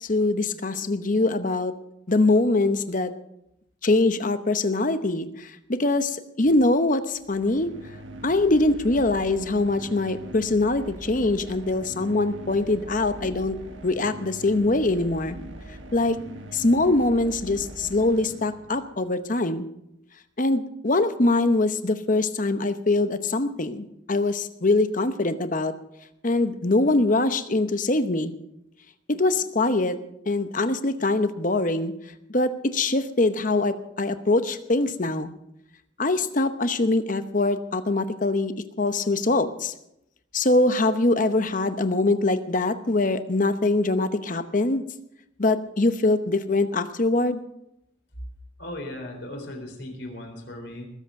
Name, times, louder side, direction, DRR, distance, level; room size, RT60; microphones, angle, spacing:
voice 1, 0.0-1.7 2.1-3.1 3.8-7.7 8.2-13.6 13.8-15.4 15.9-16.2 16.5-19.7 20.4-25.7 26.2-28.3 29.1-30.0 30.3-31.9 32.3-35.3 36.0-39.7 40.3-44.8 45.4-47.4, left 2 dB, 40° left, 11 dB, 0.9 m, -23 dB
sound 1, 7.2-19.0, right 1 dB, 65° right, 1.5 m, -42 dB
voice 2, 48.6-50.9, left 1 dB, 55° left, 3 dB, 3.9 m, -37 dB
20.0 x 8.1 x 6.5 m, 0.82 s
head